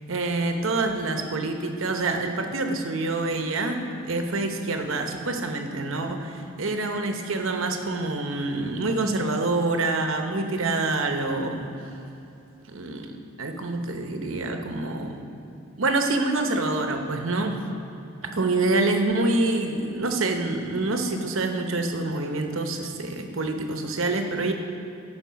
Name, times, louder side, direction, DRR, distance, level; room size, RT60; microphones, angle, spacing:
voice 1, 0.1-11.7 12.7-15.2 15.8-17.6 18.4-24.5, right 2 dB, 75° right, 5 dB, 0.9 m, -26 dB
13.0 x 4.9 x 5.8 m, 2.8 s
head